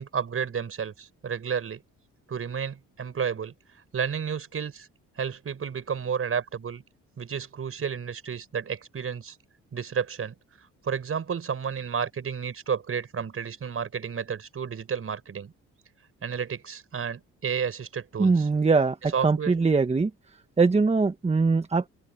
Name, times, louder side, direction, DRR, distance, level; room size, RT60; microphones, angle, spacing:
voice 1, 0.0-1.8 2.3-3.5 3.9-4.9 5.2-6.8 7.2-9.4 9.7-10.3 10.8-15.5 16.2-18.4 19.1-19.5, right 7 dB, 45° right, 5.5 m, -31 dB
voice 2, 18.2-20.1 20.6-21.9, right 4 dB, 20° right, 1.3 m, -22 dB
cardioid pair, 90°, 30 cm